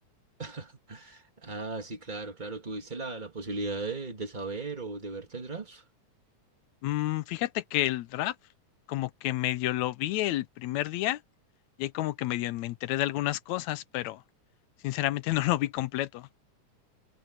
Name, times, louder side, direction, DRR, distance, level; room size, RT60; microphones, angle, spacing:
voice 1, 0.4-5.8, right 3 dB, 20° right, 1.5 m, -37 dB
voice 2, 6.8-8.4 8.9-11.2 11.8-14.2 14.8-16.3, left 16 dB, 75° left, 1.9 m, -30 dB
omnidirectional pair, 3.6 m